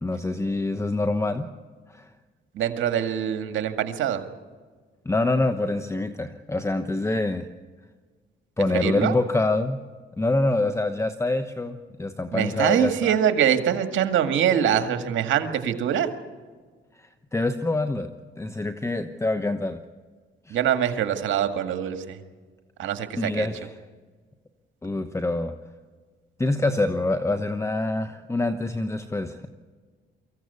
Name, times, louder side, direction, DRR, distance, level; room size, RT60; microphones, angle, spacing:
voice 1, 0.0-1.5 1.9-2.1 5.0-7.5 8.6-9.8 10.2-13.2 17.3-18.1 18.4-19.8 20.5-20.6 23.1-23.7 24.8-25.5 26.4-29.5, left 2 dB, 15° left, 9 dB, 1.0 m, -25 dB
voice 2, 2.5-4.2 8.8-9.1 12.3-16.1 20.5-22.2 22.8-23.5, right 9 dB, 75° right, 7 dB, 2.0 m, -24 dB
24.0 x 15.0 x 8.3 m, 1.5 s
cardioid pair, 90°, 20 cm